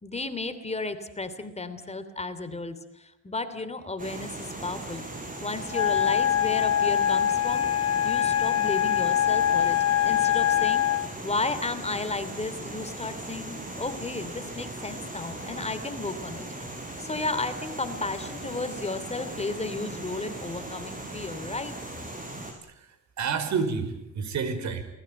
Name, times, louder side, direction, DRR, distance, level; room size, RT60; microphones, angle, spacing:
voice 1, 0.0-5.0 5.4-7.7 8.0-9.8 10.0-16.5 17.0-21.7, left 3 dB, 20° left, 10 dB, 3.1 m, -33 dB
sound 1, 4.0-22.5, right 2 dB, 25° right, 7.1 m, -39 dB
Wind instrument woodwind instrument, 5.7-11.1, left 10 dB, 55° left, 2.0 m, -23 dB
voice 2, 22.7-24.8, right 5 dB, 65° right, 10 dB, 5.3 m, -30 dB
30.0 x 20.0 x 9.0 m, 0.85 s
cardioid pair, 90°, 30 cm